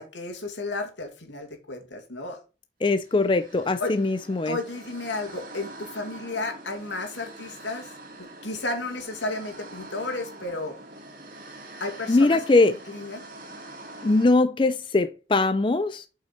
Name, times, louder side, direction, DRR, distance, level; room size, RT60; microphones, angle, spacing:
voice 1, 0.0-2.4 3.8-3.9 4.5-7.9 8.2-10.8 11.8-12.4 12.9-13.2, left 2 dB, 85° left, 2.4 m, -33 dB
voice 2, 2.8-4.6 12.1-12.8 14.0-16.1, left 3 dB, 25° left, 0.4 m, -21 dB
sound 1, 3.0-14.3, right 2 dB, 50° right, 2.2 m, -44 dB
7.7 x 5.6 x 4.3 m
head